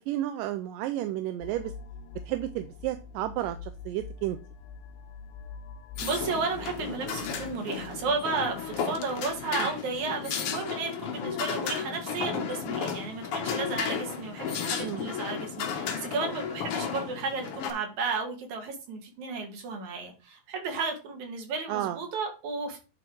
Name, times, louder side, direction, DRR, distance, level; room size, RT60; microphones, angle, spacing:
voice 1, 0.0-1.7 2.3-4.4 9.6-9.7 14.8-15.0 21.7-22.0, right 14 dB, 85° right, 9 dB, 2.2 m, -32 dB
sound 1, 1.4-10.1, left 5 dB, 80° left, 1.7 m, -46 dB
sound 2, 6.0-17.7, left 7 dB, 65° left, 1.5 m, -34 dB
voice 2, 6.0-22.8, right 4 dB, 65° right, 3 dB, 3.0 m, -33 dB
10.5 x 3.6 x 4.5 m, 0.32 s
omnidirectional pair, 3.9 m